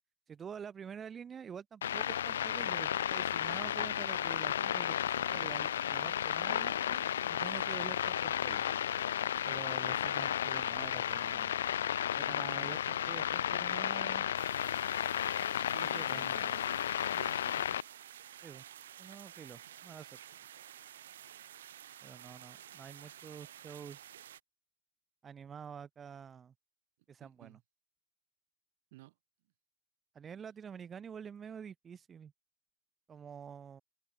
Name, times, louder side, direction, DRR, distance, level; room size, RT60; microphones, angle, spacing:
voice 1, 0.3-7.0 7.3-8.6 9.4-11.6 12.1-14.3 15.8-16.3 18.4-18.6 19.0-20.2 22.0-24.0 25.2-26.5 27.1-27.6 30.1-32.3 33.1-33.8, right 7 dB, 15° right, 0.7 m, -47 dB
sound 1, 1.8-17.8, left 10 dB, 60° left, 0.4 m, -33 dB
voice 2, 8.5-8.8 15.7-16.8 17.1-18.3 27.2-27.6 28.9-29.1, right 20 dB, 40° right, 1.6 m, -54 dB
sound 2, 14.3-24.4, right 11 dB, 60° right, 0.4 m, -52 dB
hypercardioid pair, 150°, 0 cm